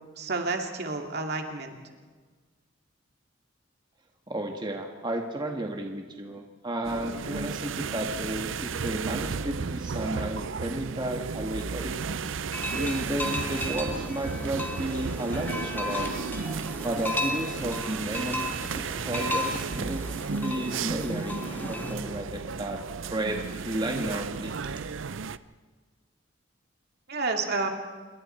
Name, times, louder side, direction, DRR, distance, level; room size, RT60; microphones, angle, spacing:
voice 1, 0.2-1.7 27.1-27.7, right 3 dB, 55° right, 3 dB, 2.3 m, -30 dB
voice 2, 4.3-12.0 12.7-16.1 16.8-18.5 19.0-20.0 20.3-22.8 23.1-24.5, right 1 dB, 25° right, 2 dB, 1.7 m, -33 dB
sound 1, 6.8-25.4, right 5 dB, 75° right, 0.6 m, -34 dB
sound 2, 12.5-21.9, left 1 dB, 10° left, 1.8 m, -35 dB
27.5 x 23.0 x 4.4 m, 1.4 s
head